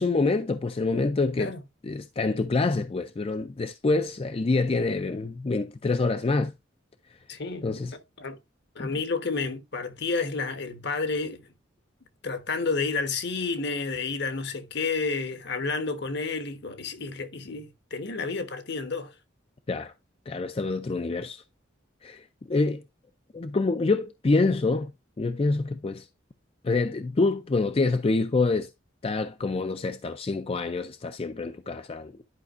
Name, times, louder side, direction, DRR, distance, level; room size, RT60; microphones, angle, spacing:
voice 1, 0.0-1.5 1.8-6.5 7.6-7.9 8.8-8.9 19.7-19.9 20.3-21.4 22.0-22.8 23.3-24.9 25.2-26.1 26.6-28.7 29.0-32.3, left 3 dB, 30° left, 0.4 m, -26 dB
voice 2, 7.3-7.7 7.9-8.4 8.7-11.4 12.2-19.1, left 4 dB, 60° left, 1.1 m, -30 dB
11.0 x 5.2 x 2.5 m
head